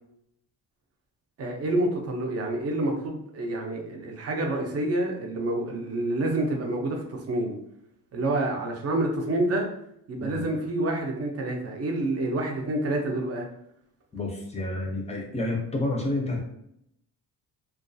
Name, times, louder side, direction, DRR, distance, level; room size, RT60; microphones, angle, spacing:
voice 1, 1.4-7.5 8.1-9.7 10.1-13.5, right 1 dB, 40° right, 2 dB, 0.5 m, -28 dB
voice 2, 14.1-16.4, left 2 dB, 15° left, 0 dB, 0.4 m, -29 dB
2.3 x 2.3 x 2.5 m, 0.74 s
wide cardioid pair, 155°, 39 cm